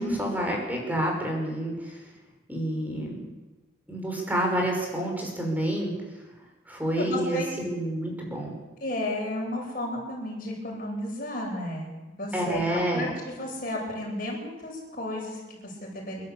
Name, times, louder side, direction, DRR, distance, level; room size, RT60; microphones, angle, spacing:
voice 1, 0.0-2.1 2.5-3.2 3.9-5.9 6.7-8.6 12.3-13.1, right 1 dB, 10° right, 0 dB, 5.5 m, -29 dB
voice 2, 7.0-7.5 8.8-11.9 12.2-16.2, left 1 dB, 45° left, -2 dB, 7.9 m, -33 dB
28.5 x 12.0 x 8.5 m, 1.2 s
head